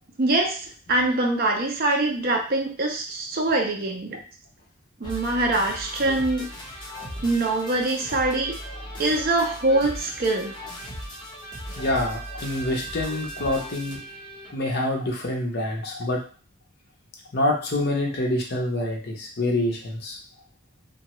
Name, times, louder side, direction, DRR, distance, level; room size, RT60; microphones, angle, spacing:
voice 1, 0.2-4.2 5.0-6.5 7.2-8.6 9.0-10.5, right 2 dB, 45° right, 2 dB, 0.5 m, -24 dB
sound 1, 5.0-14.5, equal, 20° left, 0.9 m, -37 dB
voice 2, 11.8-14.0 14.5-16.2 17.3-20.2, left 1 dB, 50° left, 0 dB, 0.6 m, -26 dB
2.8 x 2.2 x 2.9 m, 0.39 s
head